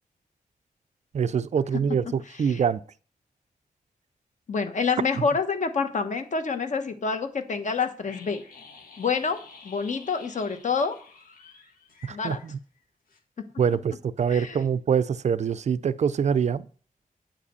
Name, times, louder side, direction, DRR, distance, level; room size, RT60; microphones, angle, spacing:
voice 1, 1.1-2.8 12.0-12.6 13.6-16.7, right 7 dB, 55° right, 0.4 m, -25 dB
voice 2, 4.5-8.4 9.0-9.4 9.6-11.0 12.1-12.4 14.3-14.6, left 5 dB, 60° left, 1.2 m, -27 dB
sound 1, 8.0-12.8 13.1-13.2, left 4 dB, 90° left, 1.7 m, -50 dB
8.9 x 5.0 x 6.7 m
wide cardioid pair, 175°, 14 cm